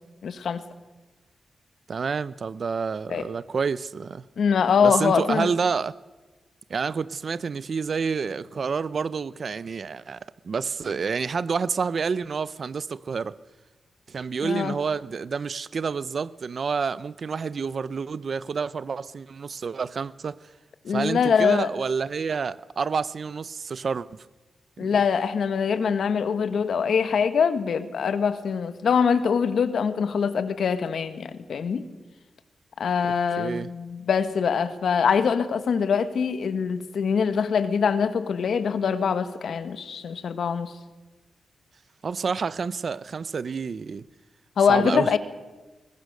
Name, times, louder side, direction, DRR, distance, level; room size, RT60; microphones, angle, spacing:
voice 1, 0.2-0.6 3.1-3.2 4.4-5.5 14.4-14.8 20.8-21.7 24.8-31.8 32.8-40.7 44.6-45.2, left 6 dB, 80° left, 1.4 m, -23 dB
voice 2, 1.9-4.2 4.8-5.9 6.7-13.4 14.1-20.4 20.9-24.3 24.8-24.9 33.4-33.7 42.0-44.0 44.7-45.1, right 5 dB, 55° right, 0.6 m, -28 dB
21.5 x 19.5 x 6.7 m
wide cardioid pair, 120°, 0 cm